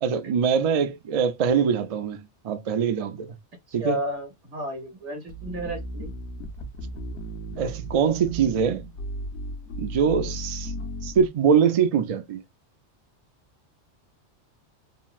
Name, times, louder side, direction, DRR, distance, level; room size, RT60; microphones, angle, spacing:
voice 1, 0.0-3.3 3.7-4.0 7.6-8.9 9.8-10.7 11.0-12.4, right 7 dB, 60° right, 0.3 m, -23 dB
voice 2, 3.8-6.1, right 1 dB, 90° right, 1.7 m, -32 dB
sound 1, 5.3-11.3, equal, 75° left, 1.1 m, -35 dB
3.9 x 2.0 x 2.3 m
omnidirectional pair, 1.2 m